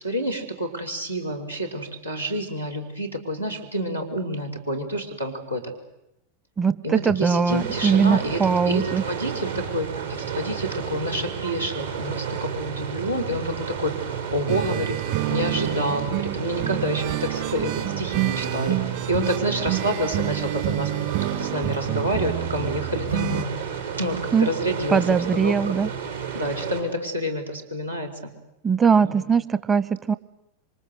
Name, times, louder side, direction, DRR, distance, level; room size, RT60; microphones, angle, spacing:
voice 1, 0.0-5.6 6.8-9.9 10.3-13.9 14.3-15.0 15.3-18.8 19.1-20.9 21.4-23.5 24.0-25.0 25.3-25.8 26.3-28.3 28.9-29.3, equal, 85° right, 2 dB, 4.2 m, -28 dB
voice 2, 6.6-9.0 24.3-24.5 24.9-25.9 28.6-30.2, right 6 dB, 20° right, 16 dB, 1.0 m, -21 dB
sound 1, 7.5-26.8, right 7 dB, 70° right, 6.0 m, -32 dB
sound 2, 14.5-23.5, right 16 dB, 45° right, 3.3 m, -28 dB
27.5 x 25.5 x 8.0 m, 0.85 s
figure-of-eight pair, 90°, 0 cm